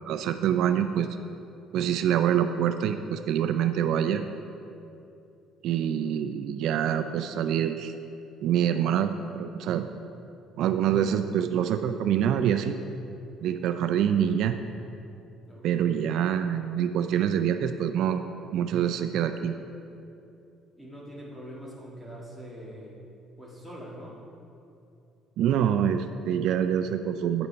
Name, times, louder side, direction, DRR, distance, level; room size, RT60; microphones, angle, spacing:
voice 1, 0.1-1.1 1.7-4.2 5.6-7.9 8.4-9.9 10.6-12.8 13.4-14.5 15.6-18.2 18.5-19.5 25.4-27.5, right 9 dB, 65° right, 8 dB, 0.3 m, -25 dB
voice 2, 15.4-16.1 20.8-23.0 23.4-24.2, equal, 5° left, -4 dB, 1.6 m, -43 dB
8.7 x 6.9 x 4.5 m, 2.7 s
cardioid pair, 155°, 0 cm